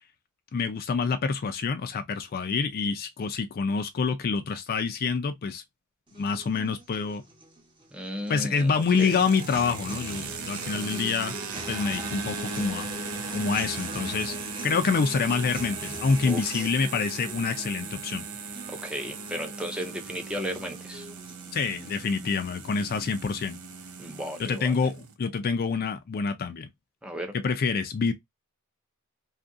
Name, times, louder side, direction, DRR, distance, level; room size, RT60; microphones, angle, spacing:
voice 1, 0.5-5.6 6.1-7.2 8.3-11.3 11.7-12.9 13.3-14.4 14.6-18.2 21.5-23.6 24.4-26.7 27.4-28.1, left 5 dB, 45° left, 0.4 m, -27 dB
sound 1, 6.1-22.1, right 1 dB, 20° right, 0.9 m, -43 dB
voice 2, 7.9-9.2 16.2-16.6 18.7-21.1 24.0-24.9 27.0-27.3, equal, 5° right, 0.5 m, -35 dB
sound 2, 8.4-25.1, right 4 dB, 75° right, 0.6 m, -38 dB
2.7 x 2.4 x 2.5 m
head